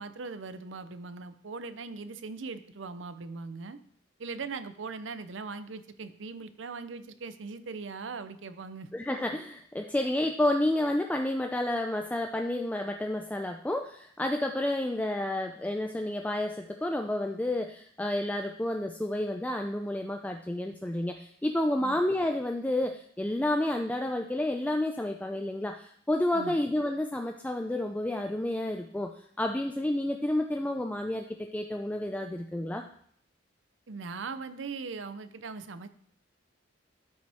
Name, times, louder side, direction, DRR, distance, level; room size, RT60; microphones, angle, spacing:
voice 1, 0.0-3.8 4.2-8.9 21.8-22.0 26.3-26.6 33.9-35.9, right 4 dB, 70° right, 11 dB, 0.6 m, -40 dB
voice 2, 8.9-32.8, left 1 dB, 10° left, 4 dB, 0.4 m, -30 dB
12.5 x 5.3 x 3.5 m, 0.62 s
head